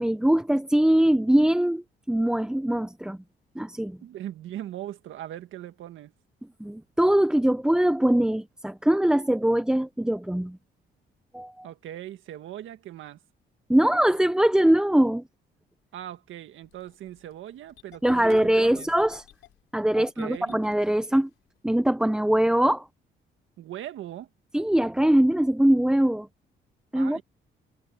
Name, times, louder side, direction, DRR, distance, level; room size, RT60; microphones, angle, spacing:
voice 1, 0.0-3.2 3.6-4.0 6.6-10.6 11.3-11.7 13.7-15.2 18.0-19.2 19.7-21.3 21.6-22.9 24.5-26.3 26.9-27.2, right 1 dB, 5° right, 0.6 m, -22 dB
voice 2, 4.0-6.1 11.6-13.2 15.9-18.9 20.0-20.6 23.6-24.3 26.9-27.2, right 12 dB, 80° right, 1.8 m, -39 dB
Engine starting, 16.6-21.6, left 14 dB, 90° left, 3.9 m, -54 dB
cardioid pair, 90°, 20 cm